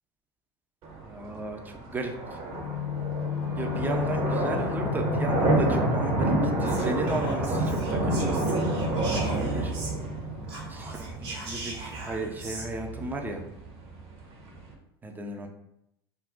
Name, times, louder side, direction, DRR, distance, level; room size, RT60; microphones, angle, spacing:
sound 1, 0.8-14.7, right 2 dB, 50° right, 0.8 m, -29 dB
voice 1, 1.0-2.1 3.6-8.7 9.1-9.7 10.7-13.4 15.0-15.5, right 2 dB, 15° right, 4 dB, 0.5 m, -34 dB
sound 2, 2.5-8.2 8.4-8.5, left 7 dB, 45° left, 0.4 m, -33 dB
Whispering, 6.6-10.2 10.4-12.7, right 2 dB, 70° right, 1.0 m, -41 dB
2.5 x 2.3 x 3.6 m, 0.80 s
hypercardioid pair, 85°, 13 cm